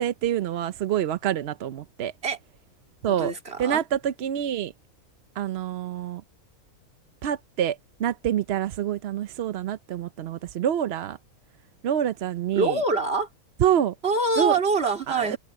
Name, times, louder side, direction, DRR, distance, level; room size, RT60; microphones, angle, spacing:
voice 1, 0.0-2.1 3.0-3.3 3.6-4.7 5.4-6.2 7.2-11.2 11.8-12.8 13.6-13.9 14.4-14.6 15.1-15.4, right 10 dB, 60° right, 0.7 m, -26 dB
voice 2, 3.1-3.8 12.5-13.3 14.0-15.4, right 3 dB, 40° right, 2.9 m, -25 dB
omnidirectional pair, 1.6 m